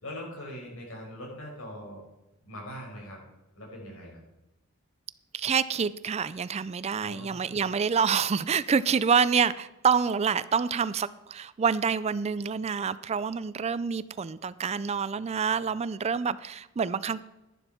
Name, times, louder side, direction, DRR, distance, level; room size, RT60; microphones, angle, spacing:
voice 1, 0.0-2.0 2.4-3.2 3.5-4.2 7.0-7.6, left 1 dB, 75° left, -1 dB, 5.2 m, -41 dB
voice 2, 5.3-17.2, right 6 dB, 30° right, 16 dB, 0.4 m, -27 dB
11.5 x 11.0 x 4.4 m, 0.98 s
head